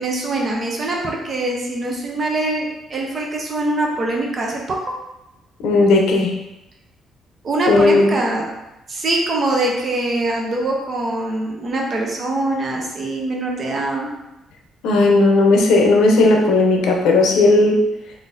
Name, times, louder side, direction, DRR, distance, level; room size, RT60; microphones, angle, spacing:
voice 1, 0.0-4.6 7.4-8.5 8.9-14.1, right 2 dB, 30° right, -1 dB, 0.5 m, -23 dB
voice 2, 5.6-6.3 7.7-8.1 14.8-17.8, left 2 dB, 80° left, 1 dB, 0.6 m, -14 dB
3.9 x 2.5 x 2.5 m, 0.94 s
cardioid pair, 180°, 0 cm